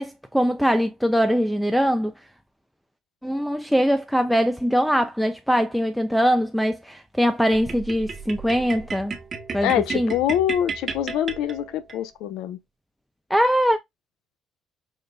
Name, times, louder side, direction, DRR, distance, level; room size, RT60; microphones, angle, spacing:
voice 1, 0.0-2.1 3.2-9.1 9.5-10.1 13.3-13.8, equal, ahead, 0.5 m, -22 dB
sound 1, 7.5-12.0, right 5 dB, 40° right, 1.0 m, -34 dB
voice 2, 9.6-12.6, left 10 dB, 80° left, 0.7 m, -25 dB
5.2 x 2.1 x 3.9 m
cardioid pair, 100°, 0 cm